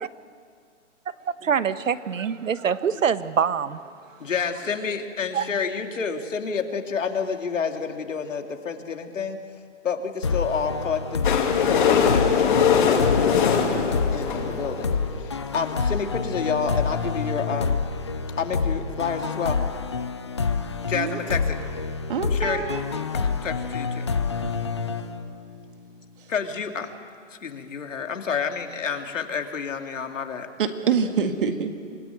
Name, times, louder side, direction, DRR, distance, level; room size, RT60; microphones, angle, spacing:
voice 1, 1.4-3.8 5.3-5.5, right 7 dB, 85° right, 1.3 m, -24 dB
voice 2, 4.2-9.4 9.8-17.9 18.4-19.6 20.8-21.6 22.3-22.7 23.1-24.1 26.3-26.9 27.4-30.5, left 6 dB, 75° left, 2.6 m, -29 dB
sound 1, 10.2-25.7, left 5 dB, 25° left, 0.5 m, -28 dB
sound 2, 11.2-15.1 15.8-16.1 16.3-16.5 16.8-16.9, left 7 dB, 40° left, 2.6 m, -21 dB
voice 3, 22.1-22.8 30.6-31.7, right 6 dB, 45° right, 1.9 m, -25 dB
27.5 x 18.0 x 9.2 m
hypercardioid pair, 170°, 38 cm